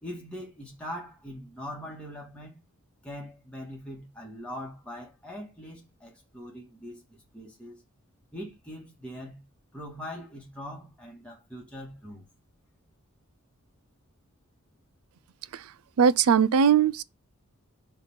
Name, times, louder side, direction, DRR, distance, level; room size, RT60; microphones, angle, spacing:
voice 1, 0.0-2.6 3.0-7.8 8.3-9.4 9.7-12.3, equal, 5° left, 1.8 m, -42 dB
voice 2, 16.0-17.0, right 7 dB, 75° right, 0.4 m, -20 dB
5.7 x 3.4 x 5.6 m
head